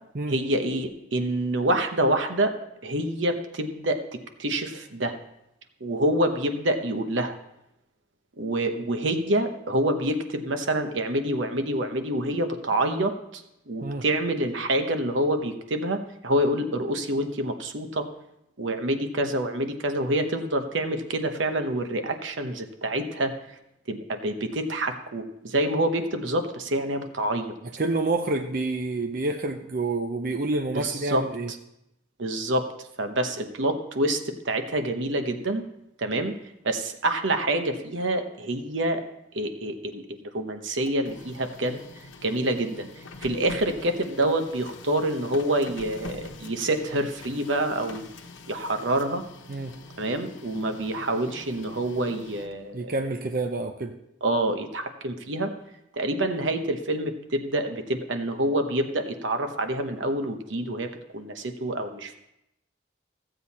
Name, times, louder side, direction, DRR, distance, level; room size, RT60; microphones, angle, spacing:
voice 1, 0.3-2.5 2.8-5.1 5.8-7.3 8.4-18.1 18.6-23.3 23.9-27.5 30.7-31.2 31.5-31.6 32.2-32.7 33.0-35.6 36.0-36.4 36.6-39.0 39.3-41.8 42.2-42.9 43.2-48.1 48.5-49.2 50.0-52.9 54.2-55.5 56.0-62.2, right 1 dB, 80° right, 6 dB, 1.0 m, -27 dB
voice 2, 27.8-31.5 49.5-49.7 52.7-53.9, right 2 dB, 45° right, 5 dB, 0.6 m, -28 dB
Printer, 40.7-52.7, left 3 dB, 80° left, 1.0 m, -45 dB
14.5 x 7.9 x 4.2 m, 0.83 s
head